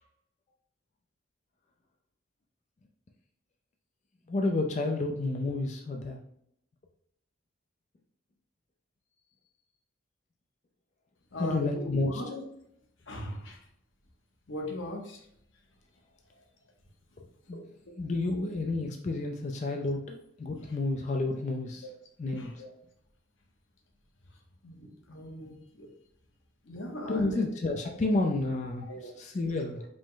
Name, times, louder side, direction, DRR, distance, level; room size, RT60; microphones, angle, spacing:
voice 1, 4.3-6.2 11.4-12.2 17.5-17.6 18.0-21.9 22.2-22.5 27.1-29.8, left 2 dB, 40° left, 2 dB, 0.4 m, -30 dB
voice 2, 11.3-12.4 13.1-13.6 14.5-15.2 17.5-17.6 22.4-22.7 24.6-25.9 26.7-27.5 28.9-29.2, left 1 dB, 85° left, 2 dB, 0.9 m, -39 dB
5.0 x 2.1 x 3.7 m, 0.72 s
head